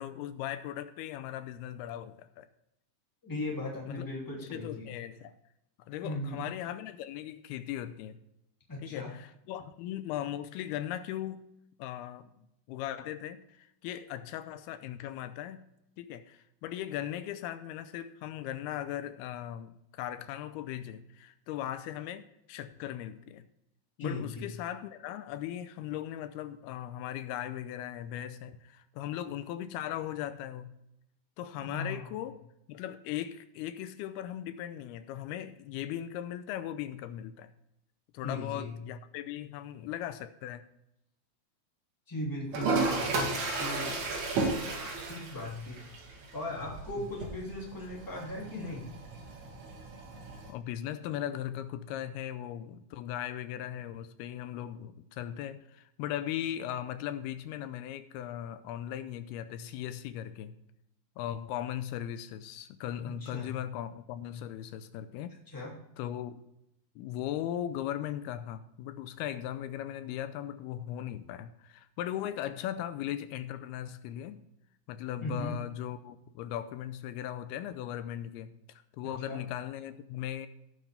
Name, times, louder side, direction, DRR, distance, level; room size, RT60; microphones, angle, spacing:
voice 1, 0.0-2.5 3.9-4.1 4.4-5.4 5.8-8.2 8.8-11.5 11.8-15.7 16.0-23.5 24.0-30.8 31.4-32.4 32.7-37.5 38.1-40.7 47.0-47.1 50.5-60.6 61.2-65.4 66.0-66.4 67.0-74.4 74.9-80.5, left 11 dB, 90° left, 2.6 m, -38 dB
voice 2, 3.2-4.9 6.0-6.4 8.7-9.1 24.0-24.5 31.6-32.2 38.2-38.7 42.1-44.0 45.1-45.9 46.3-48.9 63.2-63.5 65.5-65.7 75.2-75.6 79.3-79.4, left 2 dB, 5° left, 2.1 m, -38 dB
Toilet flush, 42.5-50.5, right 3 dB, 75° right, 4.0 m, -34 dB
17.5 x 6.2 x 3.4 m
omnidirectional pair, 4.5 m